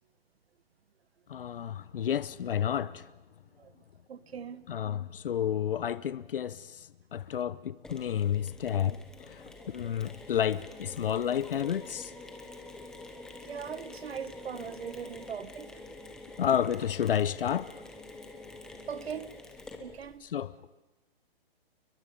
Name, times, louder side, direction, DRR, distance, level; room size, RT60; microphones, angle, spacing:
voice 1, 1.3-3.1 4.7-12.1 16.4-17.7 20.2-20.5, left 9 dB, 65° left, 0.7 m, -31 dB
voice 2, 4.1-4.6 13.4-15.7 18.9-19.3 19.8-20.2, right 7 dB, 80° right, 1.2 m, -40 dB
Mechanisms, 7.8-20.2, left 2 dB, ahead, 0.9 m, -47 dB
29.0 x 22.5 x 5.3 m
hypercardioid pair, 165°, 30 cm